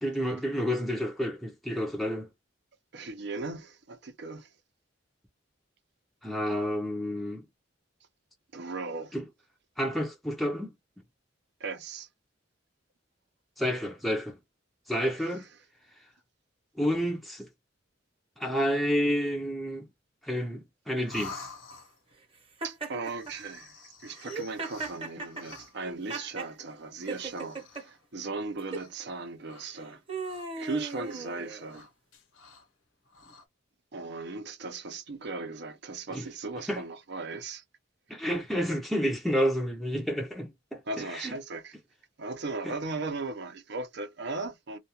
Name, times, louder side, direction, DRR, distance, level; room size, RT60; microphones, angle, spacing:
voice 1, 0.0-2.3 6.2-7.5 9.1-9.2 9.8-10.7 13.6-14.4 14.9-15.5 16.8-17.5 18.4-19.9 20.2-21.5 36.1-36.2 36.7-36.8 38.1-41.3 42.6-42.7, equal, ahead, 0.5 m, -30 dB
voice 2, 2.9-4.5 8.5-9.1 11.6-12.1 22.6-30.0 30.6-31.9 33.9-37.6 40.9-41.7 42.2-44.8, right 3 dB, 60° right, 0.6 m, -37 dB
sound 1, 21.0-22.2 23.1-25.9 26.9-28.1 28.7-29.1 29.4-30.6 30.9-31.2 31.6-32.7 33.0-33.5, left 4 dB, 80° left, 0.9 m, -49 dB
Laughter, 22.6-23.3 24.1-26.5 27.1-27.8 28.6-28.9 29.6-31.8, right 3 dB, 30° right, 0.9 m, -38 dB
2.3 x 2.3 x 2.8 m
head